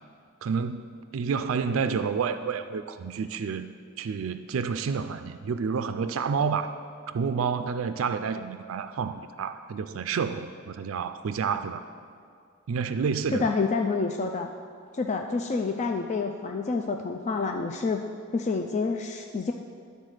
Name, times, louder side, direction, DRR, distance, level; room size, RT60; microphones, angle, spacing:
voice 1, 0.4-3.7 4.0-6.7 7.1-11.8 12.7-13.5, right 6 dB, 90° right, 10 dB, 0.4 m, -29 dB
voice 2, 13.3-14.5 14.9-18.0 18.3-19.5, left 4 dB, 35° left, 4 dB, 0.4 m, -28 dB
11.5 x 4.1 x 6.4 m, 2.2 s
head